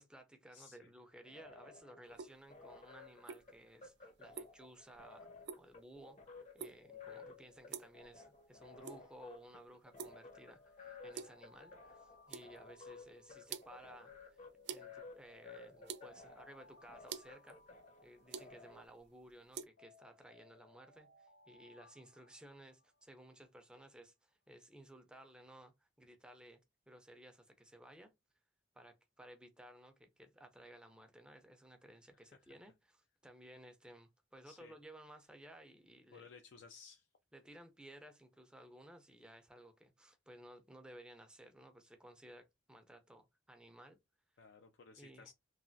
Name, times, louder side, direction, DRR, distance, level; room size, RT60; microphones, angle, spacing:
voice 1, 0.0-17.8 18.0-26.6 26.9-28.1 28.7-36.3 37.3-44.0 45.0-45.3, right 1 dB, 5° right, 0.5 m, -57 dB
voice 2, 0.5-0.9 34.4-34.8 36.1-37.1 44.4-45.3, left 5 dB, 70° left, 0.4 m, -57 dB
sound 1, 1.1-18.9, left 4 dB, 40° left, 0.7 m, -56 dB
sound 2, 2.1-19.7, right 7 dB, 60° right, 0.4 m, -52 dB
Alarm, 10.1-14.2 14.8-19.2 19.8-23.6, left 2 dB, 90° left, 0.8 m, -66 dB
3.2 x 2.3 x 2.6 m
head